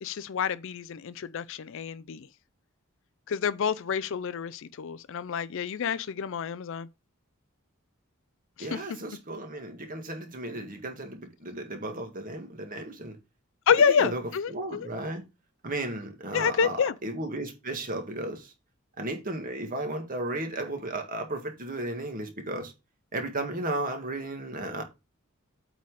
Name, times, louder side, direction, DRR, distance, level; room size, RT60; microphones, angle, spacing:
voice 1, 0.0-2.3 3.3-6.9 8.6-8.8 13.7-14.9 16.3-16.9, left 6 dB, 60° left, 0.4 m, -28 dB
voice 2, 8.6-13.2 14.0-14.2 14.5-15.2 15.6-16.8 17.0-18.5 19.0-22.7 23.1-24.8, right 2 dB, 40° right, 1.9 m, -34 dB
8.4 x 4.0 x 4.7 m
head